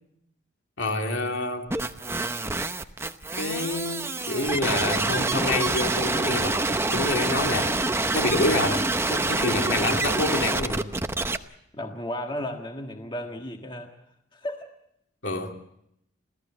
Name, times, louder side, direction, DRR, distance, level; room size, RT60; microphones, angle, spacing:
voice 1, 0.8-1.7 3.4-7.8 8.1-10.9 15.2-15.5, left 2 dB, 65° left, 2.8 m, -27 dB
sound 1, 1.7-11.4, right 2 dB, 15° right, 0.8 m, -26 dB
voice 2, 11.7-13.9 14.3-14.7, left 1 dB, 25° left, 1.5 m, -34 dB
27.5 x 16.5 x 7.3 m
head